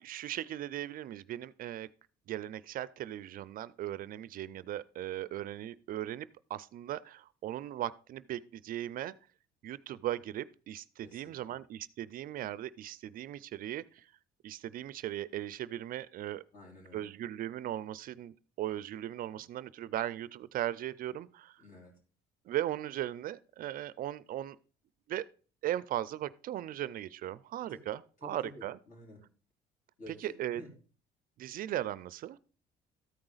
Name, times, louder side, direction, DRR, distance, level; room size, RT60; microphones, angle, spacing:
voice 1, 0.0-1.9 2.3-9.1 9.6-14.1 14.4-16.4 16.9-21.6 22.5-24.6 25.1-25.3 25.6-28.8 30.1-30.6 31.4-32.4, right 12 dB, 55° right, 0.4 m, -38 dB
voice 2, 11.0-11.5 16.5-17.1 21.6-22.0 27.7-27.8 28.2-29.2 30.0-30.7, left 2 dB, 50° left, 3.8 m, -51 dB
13.5 x 4.8 x 3.9 m
cardioid pair, 110°, 17 cm